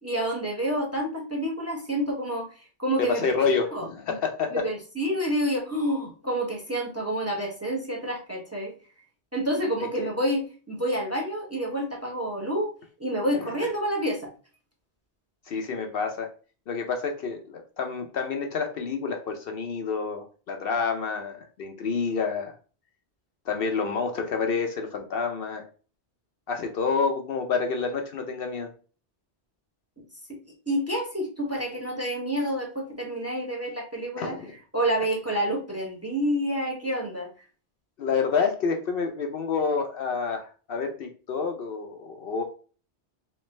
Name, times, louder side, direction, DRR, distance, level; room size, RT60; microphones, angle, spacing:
voice 1, 0.0-3.3 3.7-3.9 4.5-8.7 9.3-12.7 13.0-14.3 30.3-30.4 30.7-34.3 34.7-37.3, equal, 15° right, 0 dB, 0.9 m, -28 dB
voice 2, 3.0-4.5 10.0-10.1 13.3-13.4 15.5-16.3 16.7-22.5 23.5-25.6 26.5-28.7 34.2-34.5 38.0-42.4, left 5 dB, 65° left, 4 dB, 0.7 m, -28 dB
3.2 x 3.2 x 3.1 m, 0.38 s
omnidirectional pair, 1.1 m